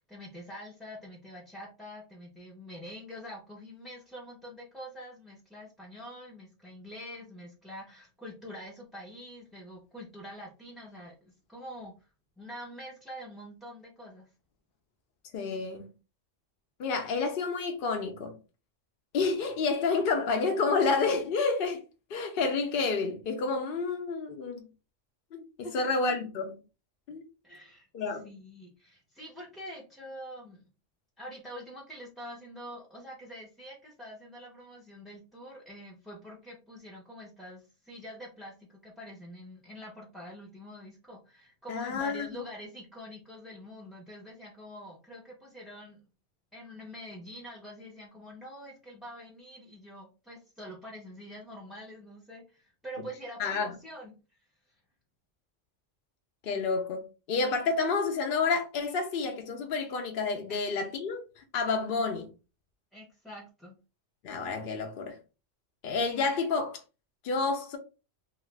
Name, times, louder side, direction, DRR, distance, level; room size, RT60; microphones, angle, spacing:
voice 1, 0.0-12.1 12.4-14.3 25.6-25.9 27.4-30.6 31.2-46.0 46.5-54.4 54.7-54.8 60.5-60.9 62.9-63.8, equal, ahead, 0.5 m, -45 dB
voice 2, 15.3-15.9 16.8-18.4 19.1-21.8 22.1-24.7 25.3-25.4 25.7-26.5 27.1-27.2 27.9-28.3 41.7-42.4 53.4-53.7 56.4-62.3 64.2-65.2 65.8-66.8 67.2-67.8, left 4 dB, 60° left, 0.6 m, -29 dB
2.8 x 2.4 x 3.2 m
omnidirectional pair, 1.2 m